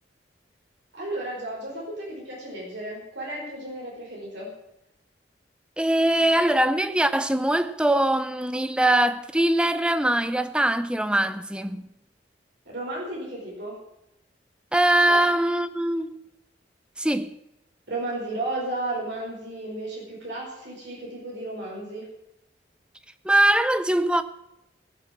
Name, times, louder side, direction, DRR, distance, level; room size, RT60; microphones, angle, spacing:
voice 1, 0.9-4.5 12.6-13.8 15.1-15.2 17.9-22.1, right 2 dB, 85° right, 4.7 m, -33 dB
voice 2, 5.8-11.8 14.7-16.2 17.0-17.3 23.2-24.2, right 1 dB, 5° right, 0.6 m, -22 dB
19.0 x 6.5 x 7.3 m
head